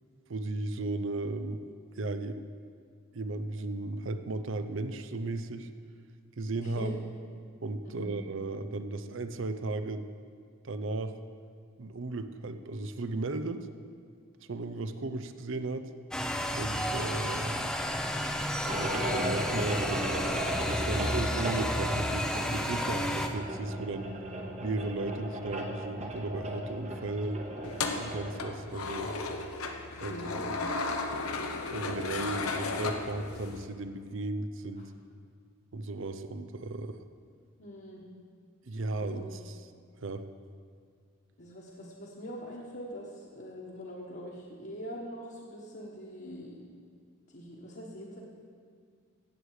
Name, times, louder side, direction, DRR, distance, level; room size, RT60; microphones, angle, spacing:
voice 1, 0.3-1.6 2.0-2.4 3.1-5.7 6.4-7.1 7.6-10.1 10.6-11.1 11.8-13.7 14.5-15.9 16.6-17.7 18.8-20.1 20.7-24.1 24.6-27.4 28.0-29.1 30.0-30.3 31.7-34.9 35.7-37.0 38.6-39.7 40.0-40.2, right 2 dB, 60° right, 10 dB, 0.6 m, -35 dB
voice 2, 6.5-7.0 7.8-8.1 29.9-30.5 37.6-38.0 39.0-39.2 41.4-46.6 47.3-48.2, equal, 50° left, -5 dB, 1.4 m, -43 dB
sound 1, 16.1-23.3, equal, 5° left, 0.6 m, -32 dB
sound 2, 18.7-28.3, right 1 dB, 30° right, 1.1 m, -36 dB
sound 3, 27.6-33.7, left 3 dB, 85° left, 1.0 m, -34 dB
16.5 x 8.0 x 4.9 m, 2.1 s
head